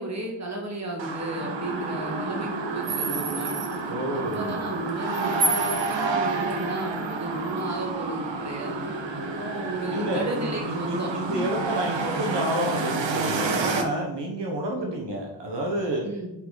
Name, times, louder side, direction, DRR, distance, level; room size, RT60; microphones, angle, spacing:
voice 1, 0.0-3.6 4.1-11.4 14.3-14.5 14.8-14.9 16.0-16.3, right 2 dB, 40° right, -1 dB, 1.8 m, -34 dB
sound 1, 1.0-13.8, right 3 dB, 90° right, 1.0 m, -29 dB
voice 2, 3.9-4.5 9.9-16.0, right 1 dB, 70° right, -1 dB, 1.3 m, -29 dB
5.7 x 5.0 x 4.0 m, 0.97 s
wide cardioid pair, 110°, 43 cm